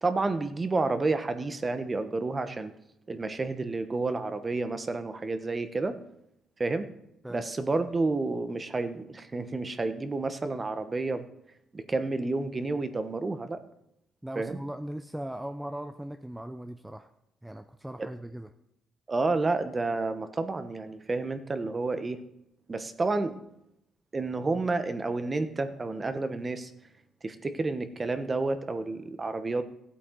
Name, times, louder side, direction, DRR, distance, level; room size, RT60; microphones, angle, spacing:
voice 1, 0.0-2.7 3.1-6.0 6.6-6.9 7.3-11.3 11.7-13.6 14.4-14.6 18.0-18.1 19.1-22.2 22.7-23.3 24.1-26.7 27.2-29.6, right 3 dB, 30° right, 10 dB, 1.1 m, -30 dB
voice 2, 14.2-17.1 17.4-18.5, right 1 dB, 5° right, 7 dB, 0.6 m, -39 dB
15.5 x 8.4 x 3.9 m, 0.81 s
cardioid pair, 90°, 0 cm